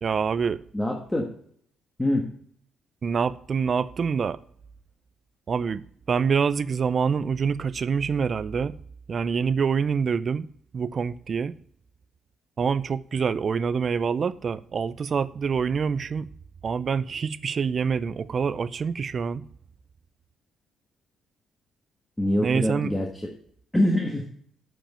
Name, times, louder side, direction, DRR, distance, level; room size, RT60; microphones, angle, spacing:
voice 1, 0.0-0.6 3.0-4.4 5.5-8.7 9.1-10.5 10.7-11.5 12.6-16.3 16.6-19.4 22.4-22.9, right 6 dB, 45° right, 0.5 m, -26 dB
voice 2, 0.7-1.3 2.0-2.3 22.2-23.1 23.7-24.2, left 1 dB, 10° left, 1.4 m, -24 dB
9.0 x 5.2 x 6.7 m
cardioid pair, 90°, 0 cm